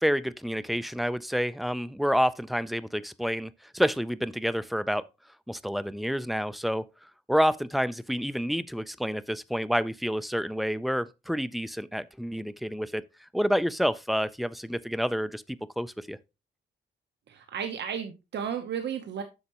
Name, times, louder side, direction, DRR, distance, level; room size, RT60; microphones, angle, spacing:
voice 1, 0.0-5.0 5.5-6.8 7.3-16.2, equal, ahead, 0.3 m, -29 dB
voice 2, 17.3-19.2, right 8 dB, 65° right, 0.9 m, -33 dB
8.0 x 6.4 x 2.9 m
wide cardioid pair, 155°, 20 cm